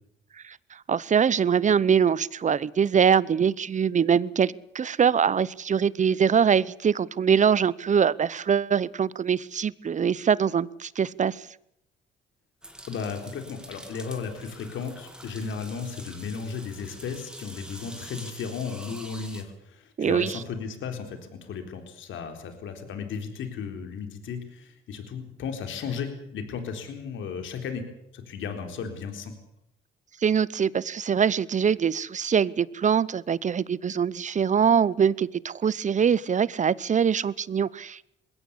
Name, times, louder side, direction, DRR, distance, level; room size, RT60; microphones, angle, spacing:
voice 1, 0.4-11.5 20.0-20.4 30.2-38.0, right 7 dB, 40° right, 22 dB, 0.8 m, -23 dB
sound 1, 12.6-19.4, right 1 dB, 5° right, 3.1 m, -45 dB
voice 2, 12.9-27.9 28.1-29.4, left 6 dB, 75° left, 6 dB, 3.9 m, -35 dB
21.0 x 17.0 x 8.4 m, 0.77 s
cardioid pair, 90°, 20 cm